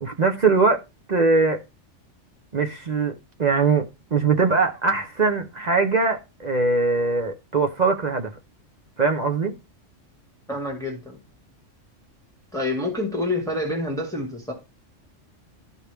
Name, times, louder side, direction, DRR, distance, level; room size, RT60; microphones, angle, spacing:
voice 1, 0.0-0.8 1.1-1.6 2.5-3.8 4.1-8.3 9.0-9.5, right 4 dB, 40° right, 0.7 m, -21 dB
voice 2, 10.5-11.2 12.5-14.5, left 2 dB, 5° left, 1.8 m, -27 dB
12.5 x 4.6 x 3.4 m
omnidirectional pair, 1.3 m